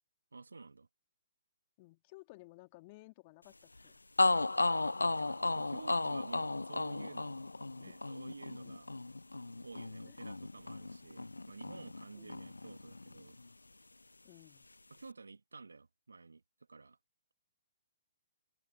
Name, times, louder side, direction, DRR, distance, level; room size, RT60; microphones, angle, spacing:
voice 1, 0.3-0.9 5.0-7.4 7.8-8.9 9.6-13.4 14.9-16.4 16.7-17.0, right 4 dB, 80° right, 2.2 m, -51 dB
voice 2, 1.8-4.0 7.8-8.0 8.3-8.7 10.0-10.2 12.1-12.5 14.2-14.7, left 23 dB, 35° left, 2.3 m, -57 dB
sound 1, 3.8-3.9 4.2-12.0 12.3-13.5, left 2 dB, 85° left, 0.5 m, -34 dB
open air
figure-of-eight pair, 125°, 0 cm